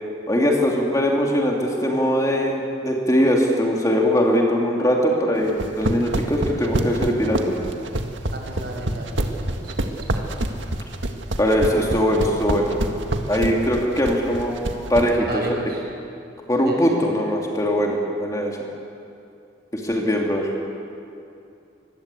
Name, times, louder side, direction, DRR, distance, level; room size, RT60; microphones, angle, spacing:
voice 1, 0.3-7.5 11.4-12.7 13.3-14.5 14.9-15.5 16.5-18.6 19.7-20.5, equal, 20° left, -1 dB, 2.6 m, -21 dB
sound 1, 5.5-15.1, right 1 dB, 85° right, 1.8 m, -25 dB
voice 2, 8.3-10.2 15.3-15.8 16.6-16.8, right 2 dB, 55° right, 0 dB, 6.5 m, -34 dB
25.0 x 20.5 x 8.4 m, 2.6 s
head